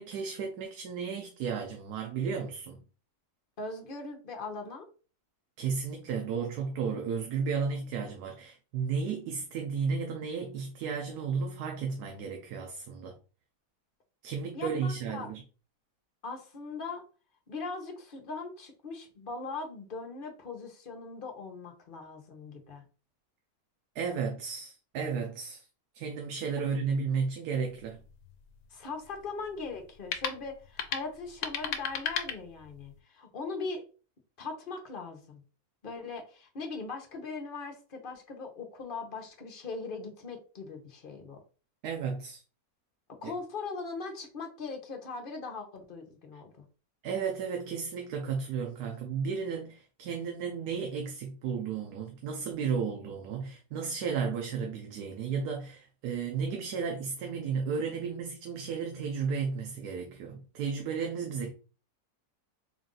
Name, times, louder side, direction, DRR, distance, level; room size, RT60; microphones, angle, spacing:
voice 1, 0.0-2.8 5.6-13.2 14.2-15.4 23.9-25.7 25.9-28.0 41.8-42.4 47.0-61.5, right 5 dB, 80° right, 1.2 m, -33 dB
voice 2, 3.6-4.9 14.5-15.3 16.2-17.0 17.5-22.8 26.6-26.7 28.7-33.8 34.4-35.4 35.8-41.4 43.2-46.6, left 4 dB, 40° left, 0.9 m, -40 dB
sound 1, 27.6-33.0, left 7 dB, 75° left, 1.1 m, -38 dB
3.9 x 2.5 x 3.7 m
omnidirectional pair, 1.7 m